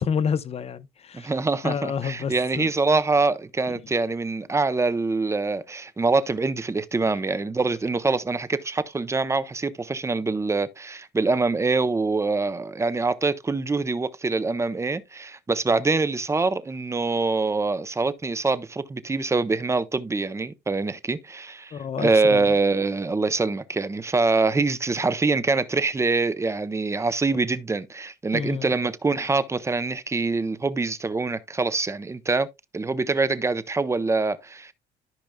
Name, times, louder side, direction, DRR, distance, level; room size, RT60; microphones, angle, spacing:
voice 1, 0.0-1.3 1.6-2.7 21.7-22.5 28.3-28.7, left 7 dB, 35° left, 0.7 m, -29 dB
voice 2, 1.1-32.5 32.7-34.7, right 3 dB, 15° right, 0.7 m, -24 dB
13.5 x 5.2 x 2.2 m
cardioid pair, 110°, 17 cm